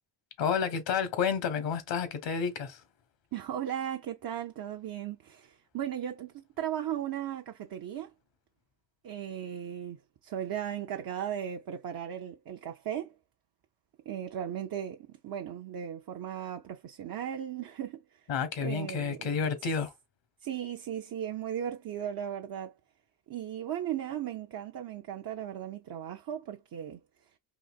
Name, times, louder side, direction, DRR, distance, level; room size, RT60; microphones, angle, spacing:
voice 1, 0.4-2.8 18.3-19.9, left 6 dB, 80° left, 1.2 m, -30 dB
voice 2, 3.3-8.1 9.0-13.2 14.1-18.3 18.6-19.3 20.4-22.7 23.3-27.0, right 10 dB, 55° right, 0.6 m, -37 dB
4.0 x 2.8 x 2.3 m
cardioid pair, 100°, 44 cm